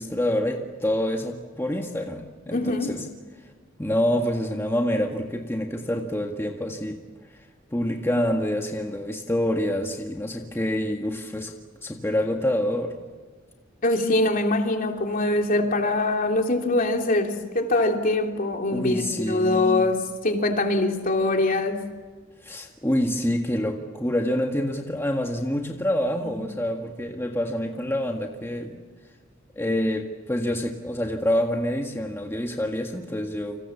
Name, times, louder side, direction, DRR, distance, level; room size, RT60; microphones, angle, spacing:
voice 1, 0.0-3.0 3.8-7.0 7.7-11.5 11.8-12.9 18.7-19.9 22.4-28.8 29.5-33.6, left 1 dB, 15° left, 2 dB, 1.8 m, -27 dB
voice 2, 2.5-3.0 13.8-21.8 26.2-26.4, left 2 dB, 45° left, 3 dB, 3.2 m, -23 dB
29.5 x 27.0 x 7.3 m, 1.4 s
head